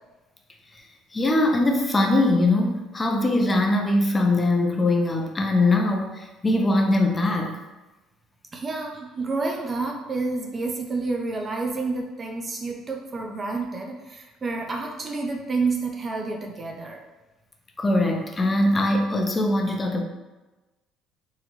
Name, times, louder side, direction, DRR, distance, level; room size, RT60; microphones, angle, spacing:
voice 1, 1.1-7.5 17.8-20.0, left 2 dB, 25° left, 2 dB, 0.5 m, -21 dB
voice 2, 8.5-17.0, right 3 dB, 30° right, 1 dB, 0.6 m, -29 dB
3.7 x 2.1 x 3.0 m, 1.1 s
supercardioid pair, 90°, 0 cm